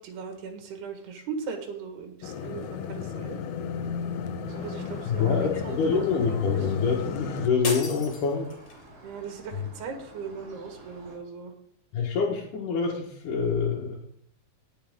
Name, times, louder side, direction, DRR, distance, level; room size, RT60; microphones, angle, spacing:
voice 1, 0.0-3.4 4.6-5.3 5.6-6.0 6.3-6.4 9.0-11.5, right 5 dB, 90° right, 4 dB, 3.8 m, -38 dB
sound 1, 2.2-7.5, left 7 dB, 80° left, 1.6 m, -34 dB
sound 2, 4.5-11.2, right 1 dB, 45° right, 6.6 m, -50 dB
voice 2, 5.0-8.5 11.9-14.0, left 5 dB, 60° left, -4 dB, 2.7 m, -26 dB
sound 3, 7.6-8.9, left 4 dB, 45° left, 2.7 m, -35 dB
18.5 x 6.3 x 3.7 m, 0.70 s
omnidirectional pair, 4.5 m